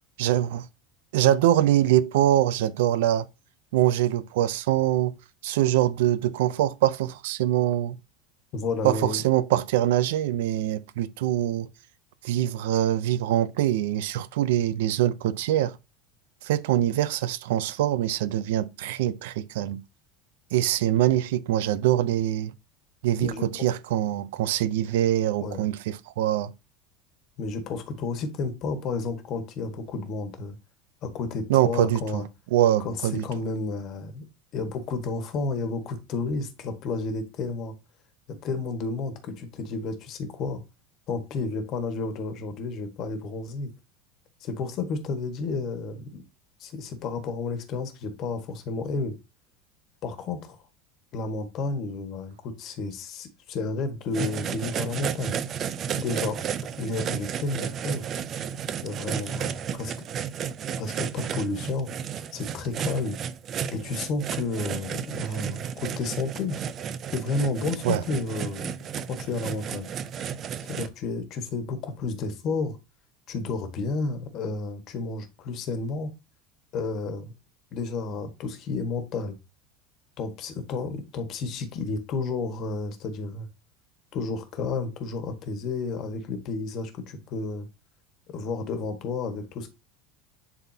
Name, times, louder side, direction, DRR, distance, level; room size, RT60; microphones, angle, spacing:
voice 1, 0.2-0.6 1.1-3.3 3.7-5.1 5.4-8.0 8.8-11.7 12.2-15.8 16.4-19.8 20.5-22.5 23.0-26.5 31.5-32.2 32.5-33.2 67.8-68.0, right 12 dB, 85° right, 0.5 m, -24 dB
voice 2, 8.5-9.2 23.2-23.7 25.4-25.7 27.4-30.6 31.0-32.3 32.8-33.0 33.2-34.3 34.5-37.7 38.4-40.6 41.1-43.7 44.4-46.2 46.6-49.2 50.0-50.6 51.1-55.3 56.0-56.4 56.8-58.1 58.8-59.9 60.8-61.9 62.3-63.2 63.7-66.6 67.1-68.7 69.1-69.9 70.7-72.8 73.3-76.1 76.7-77.3 77.7-79.4 80.2-83.5 84.1-87.7 88.3-89.7, left 3 dB, 40° left, 1.5 m, -31 dB
sound 1, 54.1-70.9, right 8 dB, 30° right, 0.5 m, -33 dB
10.5 x 4.0 x 2.8 m
supercardioid pair, 160°, 0 cm